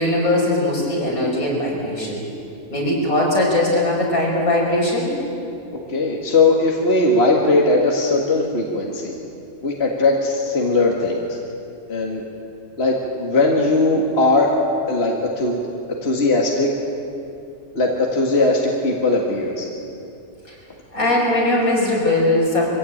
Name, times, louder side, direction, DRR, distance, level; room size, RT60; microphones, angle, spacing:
voice 1, 0.0-2.2 2.7-5.1 20.5-20.6 20.9-22.7, left 1 dB, 80° left, -3 dB, 6.0 m, -20 dB
voice 2, 5.9-9.1 9.6-11.4 11.9-12.2 12.8-14.5 14.9-15.6 16.0-16.7 17.8-19.7, left 2 dB, 50° left, -1 dB, 2.2 m, -19 dB
23.5 x 16.5 x 8.8 m, 2.6 s
omnidirectional pair, 1.4 m